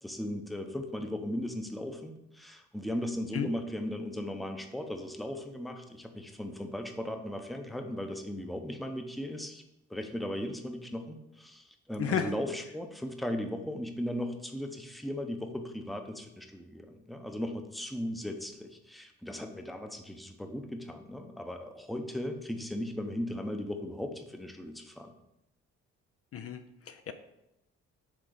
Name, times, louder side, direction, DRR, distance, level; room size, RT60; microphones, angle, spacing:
voice 1, 0.0-9.6 9.9-25.1, left 1 dB, ahead, 5 dB, 0.7 m, -37 dB
voice 2, 12.0-12.3 26.3-27.1, left 7 dB, 50° left, 8 dB, 0.5 m, -33 dB
6.3 x 3.7 x 5.0 m, 0.86 s
cardioid pair, 90°, 30 cm